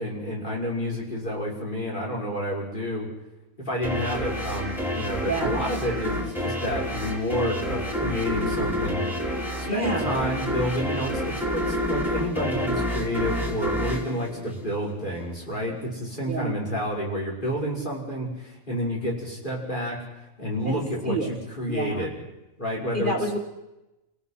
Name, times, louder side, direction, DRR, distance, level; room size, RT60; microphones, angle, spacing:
voice 1, 0.0-3.1 3.6-9.0 9.6-20.0 20.4-22.1 22.6-23.2, equal, 35° left, -3 dB, 6.0 m, -29 dB
sound 1, 3.8-15.1, equal, ahead, 3.3 m, -29 dB
voice 2, 5.2-5.6 9.7-10.2 16.3-16.6 20.7-21.3 21.7-22.1 22.9-23.4, right 2 dB, 35° right, 3 dB, 1.8 m, -29 dB
29.5 x 17.5 x 5.9 m, 0.97 s
omnidirectional pair, 1.4 m